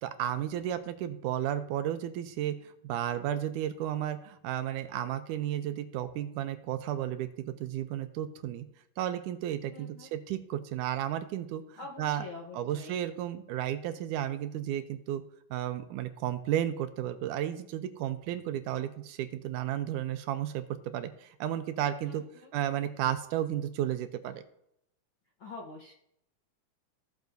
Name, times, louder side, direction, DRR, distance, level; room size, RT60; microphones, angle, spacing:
voice 1, 0.0-8.7 9.0-12.2 12.5-15.2 15.5-20.6 20.9-22.2 22.5-24.4, right 11 dB, 80° right, 10 dB, 2.1 m, -33 dB
voice 2, 9.7-10.1 11.8-13.0 22.0-22.5 25.4-25.9, left 3 dB, 65° left, -2 dB, 1.2 m, -45 dB
15.5 x 7.2 x 2.6 m, 0.74 s
omnidirectional pair, 3.7 m